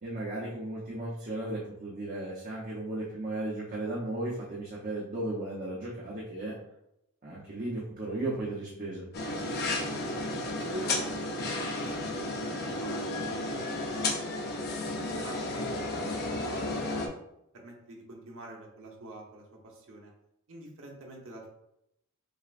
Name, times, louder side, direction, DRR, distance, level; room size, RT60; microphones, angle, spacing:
voice 1, 0.0-6.5 7.2-9.1, right 2 dB, 40° right, -6 dB, 0.9 m, -35 dB
sound 1, 9.1-17.1, left 2 dB, 45° left, 0.6 m, -33 dB
voice 2, 10.5-13.4 13.9-14.3 15.0-17.1 17.5-20.1 20.5-21.5, right 2 dB, 65° right, 0 dB, 0.9 m, -46 dB
6.5 x 2.3 x 2.5 m, 0.80 s
head